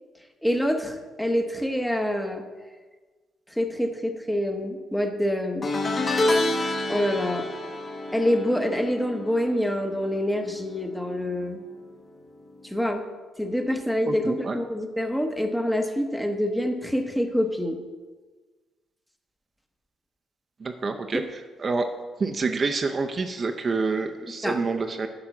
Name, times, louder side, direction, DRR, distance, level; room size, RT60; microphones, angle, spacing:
voice 1, 0.4-2.4 3.5-5.7 6.9-7.5 8.1-11.6 12.6-13.0 13.4-17.8 24.4-24.6, equal, 5° left, 5 dB, 1.0 m, -26 dB
sound 1, 5.6-11.0 11.3-11.7 12.9-13.0, left 2 dB, 35° left, 1.1 m, -28 dB
voice 2, 14.1-14.6 20.6-21.9 22.2-25.1, right 4 dB, 40° right, 6 dB, 0.6 m, -27 dB
8.7 x 5.1 x 5.9 m, 1.4 s
cardioid pair, 90°, 0 cm